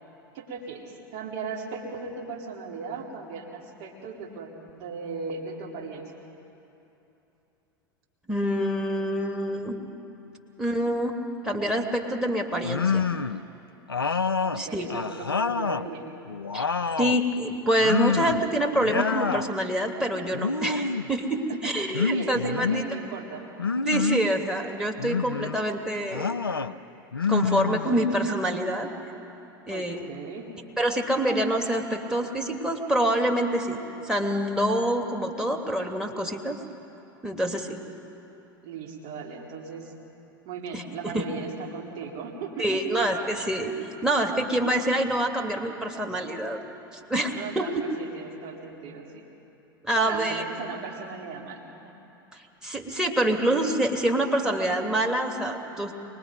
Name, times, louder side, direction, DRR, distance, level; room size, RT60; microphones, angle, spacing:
voice 1, 0.3-6.1 14.4-16.1 21.6-23.4 27.5-28.1 29.7-30.5 38.6-39.9 40.4-43.0 47.3-49.2 49.9-51.9, right 4 dB, 50° right, -1 dB, 3.7 m, -37 dB
voice 2, 8.3-9.8 10.6-11.2 11.4-13.1 14.6-14.9 16.5-16.7 17.0-22.8 23.7-26.3 27.3-28.9 29.7-30.0 30.8-36.6 37.2-37.8 40.7-41.2 42.6-43.7 44.0-46.6 47.1-47.7 49.8-50.4 52.6-55.9, right 1 dB, 5° right, 4 dB, 2.1 m, -26 dB
sound 1, 12.6-13.4 13.9-15.9 16.3-17.2 17.8-18.5 18.8-19.5 20.3-21.1 21.9-22.8 23.6-24.3 25.0-25.6 26.1-26.7 27.1-28.2, left 5 dB, 85° left, 0.5 m, -27 dB
24.5 x 20.5 x 5.3 m, 2.9 s
figure-of-eight pair, 80°, 12 cm